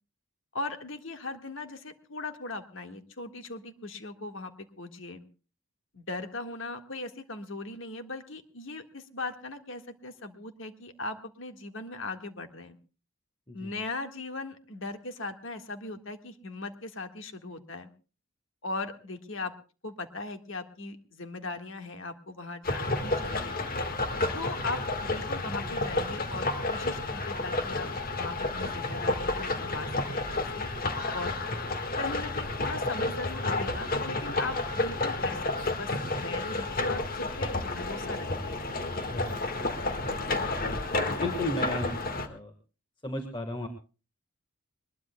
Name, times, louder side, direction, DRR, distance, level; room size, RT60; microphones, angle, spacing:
voice 1, 0.5-5.2 5.9-12.8 13.5-17.9 18.6-19.5 19.8-23.6 24.3-30.7 31.1-31.3 31.9-38.6, left 2 dB, 60° left, 7 dB, 1.6 m, -39 dB
sound 1, 22.6-42.3, left 2 dB, 40° left, 1.6 m, -31 dB
voice 2, 41.1-42.0 42.3-42.5 43.0-43.7, left 1 dB, 20° left, 5 dB, 1.4 m, -33 dB
22.0 x 21.0 x 2.2 m, 0.34 s
head